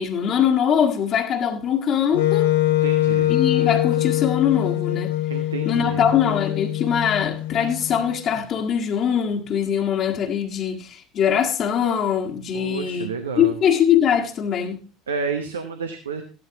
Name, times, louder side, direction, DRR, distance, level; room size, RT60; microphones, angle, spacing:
voice 1, 0.0-2.5 3.3-5.1 5.6-13.1 13.4-14.8, left 8 dB, 45° left, 1.6 m, -22 dB
Wind instrument woodwind instrument, 2.1-8.2, left 14 dB, 70° left, 1.0 m, -23 dB
voice 2, 2.7-3.3 5.3-6.1 12.5-13.5 15.1-16.2, right 5 dB, 80° right, 1.0 m, -30 dB
14.5 x 11.5 x 2.9 m
figure-of-eight pair, 65°, 0 cm